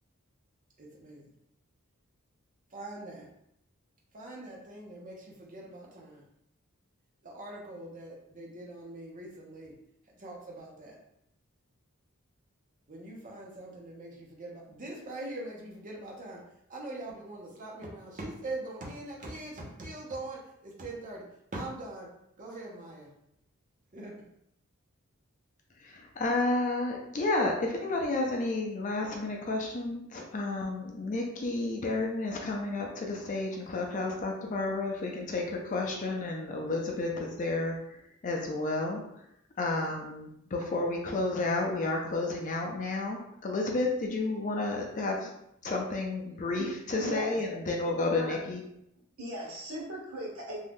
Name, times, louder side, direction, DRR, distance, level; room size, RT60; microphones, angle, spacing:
voice 1, 0.8-1.3 2.7-3.3 4.1-6.3 7.2-9.8 10.1-11.0 12.9-16.4 16.7-22.1 22.4-23.1 23.9-24.2 39.7-39.8, right 2 dB, 35° right, -2 dB, 0.7 m, -42 dB
voice 2, 25.8-37.8 38.2-39.0 39.6-45.3 45.6-48.6, left 2 dB, 35° left, 0 dB, 0.5 m, -31 dB
voice 3, 47.0-47.3 48.2-48.4 49.2-50.6, right 1 dB, 80° right, -3 dB, 1.0 m, -38 dB
2.6 x 2.3 x 3.5 m, 0.76 s
head